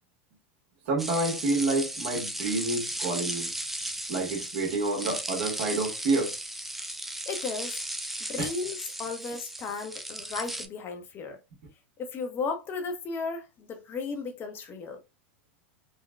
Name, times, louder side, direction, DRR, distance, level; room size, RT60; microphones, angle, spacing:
voice 1, 0.9-3.5 4.1-6.4 8.4-8.5, right 3 dB, 65° right, 1.4 m, -28 dB
sound 1, 1.0-10.7, right 1 dB, 5° right, 0.3 m, -36 dB
voice 2, 7.3-7.8 8.3-11.4 12.0-15.0, left 4 dB, 35° left, 0.7 m, -35 dB
3.8 x 2.2 x 2.2 m
supercardioid pair, 120°, 7 cm